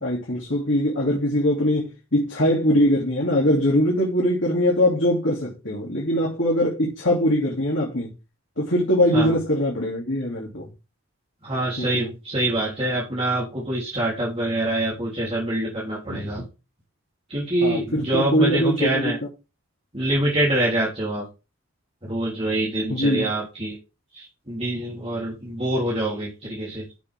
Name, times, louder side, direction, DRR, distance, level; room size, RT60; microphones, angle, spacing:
voice 1, 0.0-8.1 8.6-10.7 11.8-12.1 17.6-19.2 22.9-23.3, equal, 60° left, 2.9 m, -22 dB
voice 2, 11.4-16.4 17.3-19.2 19.9-21.3 22.0-23.8 24.1-26.8, right 1 dB, 30° right, 3.5 m, -25 dB
11.0 x 6.9 x 3.6 m
head